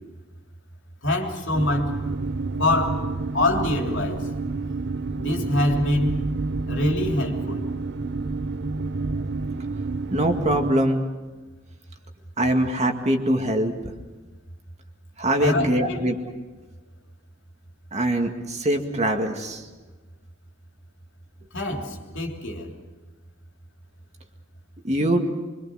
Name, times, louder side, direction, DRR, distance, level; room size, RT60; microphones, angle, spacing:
voice 1, 1.0-2.1 2.6-4.4 5.1-6.2 6.7-7.7 15.4-16.0 21.5-22.7, left 1 dB, 60° left, 3.2 m, -25 dB
sound 1, 1.5-10.7, right 3 dB, 55° right, 0.7 m, -29 dB
voice 2, 10.1-11.1 12.4-13.7 15.2-16.2 17.9-19.6 24.8-25.2, right 1 dB, 35° right, 2.1 m, -23 dB
25.5 x 24.5 x 6.4 m
head